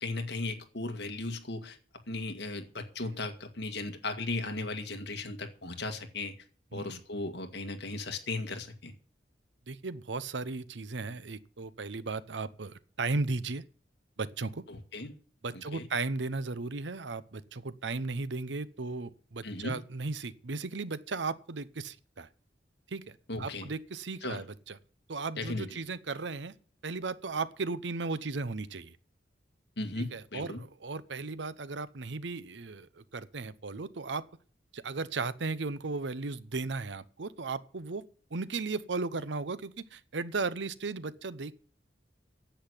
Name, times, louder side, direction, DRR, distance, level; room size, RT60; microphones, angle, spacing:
voice 1, 0.0-1.8 2.1-6.3 6.7-8.9 14.7-15.1 15.5-15.9 19.4-19.8 23.3-23.7 24.2-24.4 25.4-25.7 29.8-30.6, left 2 dB, 70° left, 1.9 m, -36 dB
voice 2, 9.7-13.6 14.2-14.6 15.4-22.3 22.9-24.8 25.1-26.5 26.8-29.0 30.0-34.2 34.7-38.0 38.3-41.6, right 3 dB, 85° right, 0.8 m, -36 dB
10.0 x 8.0 x 9.8 m
head